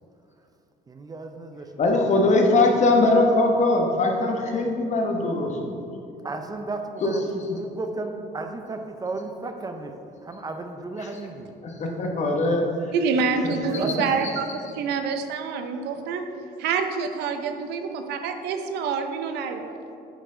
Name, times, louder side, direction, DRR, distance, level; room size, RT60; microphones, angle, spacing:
voice 1, 0.9-1.7 6.2-7.2 7.5-9.9 10.2-11.5 13.8-14.2, right 3 dB, 20° right, 6 dB, 0.5 m, -34 dB
voice 2, 1.8-5.8 7.0-7.6 11.0-11.2 11.6-12.9 13.4-14.0, left 2 dB, 45° left, 2 dB, 1.1 m, -22 dB
voice 3, 12.9-14.5 14.8-16.2 16.6-19.8, right 5 dB, 80° right, 7 dB, 0.6 m, -27 dB
9.1 x 4.4 x 3.8 m, 2.7 s
cardioid pair, 110°, 17 cm